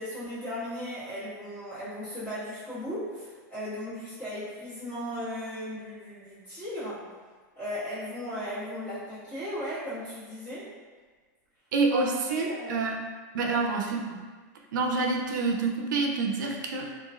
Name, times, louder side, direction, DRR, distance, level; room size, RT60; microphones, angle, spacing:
voice 1, 0.0-7.1 7.5-10.7 11.9-12.8 13.4-13.6, equal, 15° left, -14 dB, 1.5 m, -36 dB
voice 2, 11.7-13.0 13.3-14.2 14.7-16.9, right 3 dB, 90° right, 1 dB, 0.4 m, -27 dB
3.0 x 2.3 x 2.4 m, 1.4 s
supercardioid pair, 155°, 10 cm